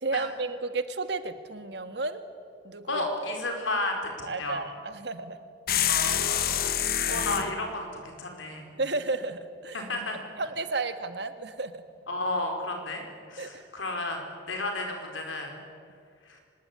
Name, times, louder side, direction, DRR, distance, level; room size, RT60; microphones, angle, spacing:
voice 1, 0.0-2.2 2.6-3.0 4.3-5.4 7.1-7.3 8.8-9.8 10.4-11.8 13.4-13.7, right 3 dB, 60° right, 9 dB, 1.6 m, -33 dB
voice 2, 2.9-4.6 5.9-6.7 7.1-8.7 9.7-10.3 12.1-13.0 13.3-14.2 14.5-15.5 16.3-16.4, left 2 dB, 85° left, 3 dB, 4.9 m, -32 dB
sound 1, 5.7-7.5, left 10 dB, 50° left, 1.2 m, -26 dB
24.5 x 20.5 x 9.8 m, 2.2 s
head